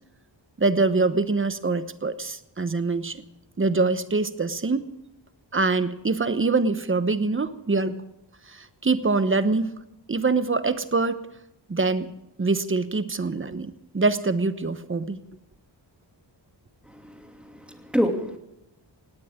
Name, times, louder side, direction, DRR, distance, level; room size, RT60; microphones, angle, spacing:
voice 1, 0.6-3.2 3.6-4.9 5.5-8.0 8.5-9.8 10.1-11.3 11.7-12.1 12.4-15.2, right 3 dB, 25° right, 12 dB, 1.0 m, -24 dB
voice 2, 16.9-18.4, equal, ahead, 3 dB, 2.7 m, -28 dB
19.0 x 18.0 x 3.7 m, 0.88 s
wide cardioid pair, 120°, 46 cm